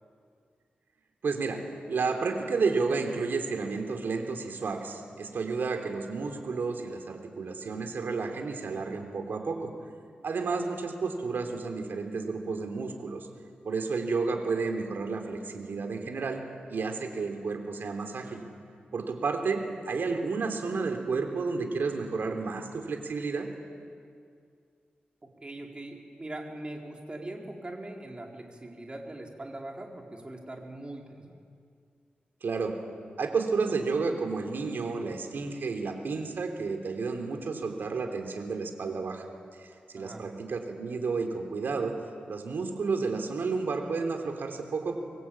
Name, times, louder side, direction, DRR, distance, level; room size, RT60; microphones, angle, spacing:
voice 1, 1.2-1.6 1.9-9.7 10.2-13.3 13.7-16.4 16.7-18.4 18.9-23.5 32.4-32.8 33.2-39.3 39.9-41.9 42.3-45.0, right 4 dB, 75° right, 4 dB, 3.5 m, -31 dB
voice 2, 25.4-31.3 39.9-40.3, right 1 dB, 30° right, 0 dB, 4.7 m, -41 dB
25.5 x 22.0 x 8.9 m, 2.3 s
cardioid pair, 70°, 4 cm